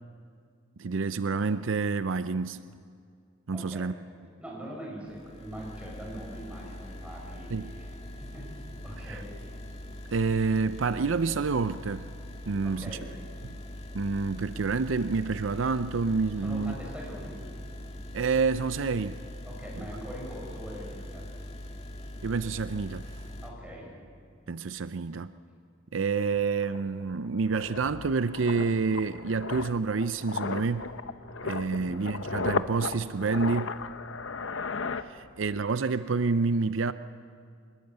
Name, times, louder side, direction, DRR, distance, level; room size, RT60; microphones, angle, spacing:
voice 1, 0.8-2.6 3.5-3.9 7.5-7.7 9.1-9.2 10.1-12.1 12.5-13.0 13.9-16.7 18.1-19.2 19.7-19.8 22.2-23.1 24.5-25.3 25.9-30.9 31.4-33.8 35.0-36.9, right 4 dB, 75° right, 0.6 m, -28 dB
voice 2, 3.5-3.9 4.4-7.9 8.2-8.5 8.8-9.3 12.6-13.1 16.4-17.4 19.4-21.3 23.4-23.9 31.7-32.0, equal, 5° right, 7.6 m, -42 dB
sound 1, 5.1-23.5, left 1 dB, 35° left, 2.3 m, -42 dB
sound 2, 26.2-26.3 26.6-35.7 35.9-36.2, left 4 dB, 80° left, 0.8 m, -36 dB
26.0 x 21.0 x 8.0 m
head